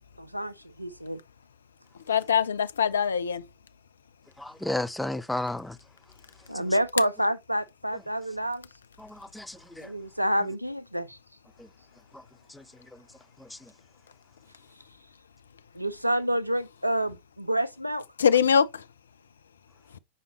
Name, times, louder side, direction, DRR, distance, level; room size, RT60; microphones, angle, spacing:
voice 1, 0.2-1.2 6.5-8.7 9.8-11.2 15.7-18.0, right 1 dB, 90° right, 0.5 m, -28 dB
voice 2, 2.1-3.4 18.2-18.8, left 7 dB, 70° left, 0.5 m, -23 dB
voice 3, 4.4-5.7 9.0-9.9, left 1 dB, 5° left, 0.4 m, -32 dB
6.3 x 5.0 x 3.0 m
figure-of-eight pair, 90°, 0 cm